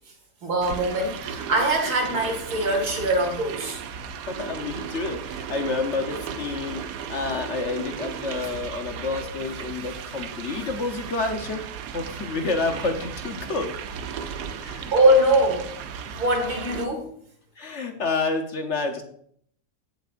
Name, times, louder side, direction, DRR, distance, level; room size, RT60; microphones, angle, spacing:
voice 1, 0.4-3.8 14.9-15.7 16.1-17.1, right 1 dB, 75° right, 2 dB, 2.6 m, -22 dB
sound 1, 0.6-16.9, right 7 dB, 90° right, 1.3 m, -35 dB
voice 2, 4.3-11.6 11.9-13.8 14.6-14.9 17.6-19.0, left 3 dB, 50° left, 4 dB, 1.2 m, -29 dB
16.0 x 6.8 x 2.6 m, 0.64 s
omnidirectional pair, 1.7 m